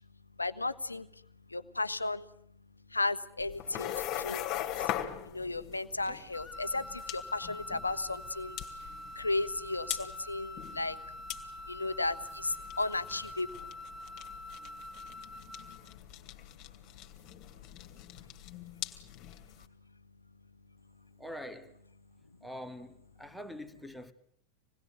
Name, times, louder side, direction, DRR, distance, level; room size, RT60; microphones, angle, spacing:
voice 1, 0.4-1.0 1.5-2.2 2.9-3.9 4.2-4.4 5.3-8.6 9.2-11.0 11.7-13.7, left 2 dB, 80° left, 1.2 m, -34 dB
sound 1, 3.4-19.6, left 12 dB, 40° left, 2.8 m, -42 dB
sound 2, 6.3-15.9, left 1 dB, 15° left, 3.2 m, -45 dB
voice 2, 21.2-21.8 22.4-24.1, equal, ahead, 2.1 m, -44 dB
27.0 x 20.0 x 9.2 m
figure-of-eight pair, 90°, 0 cm